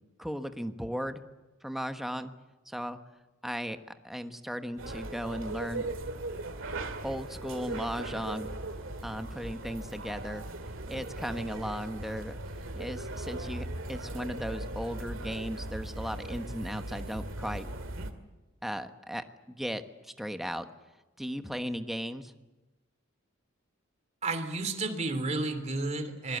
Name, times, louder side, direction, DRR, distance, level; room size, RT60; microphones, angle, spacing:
voice 1, 0.2-1.2 1.6-2.3 2.7-3.0 3.4-3.8 4.0-5.9 7.0-8.5 9.0-10.5 10.9-12.4 12.7-17.7 18.6-20.6 21.2-22.3, equal, ahead, 8 dB, 1.2 m, -36 dB
sound 1, 4.8-18.1, right 2 dB, 70° right, 2.2 m, -38 dB
voice 2, 24.2-26.4, right 3 dB, 35° right, 6 dB, 3.1 m, -32 dB
25.5 x 21.0 x 8.1 m, 1.1 s
head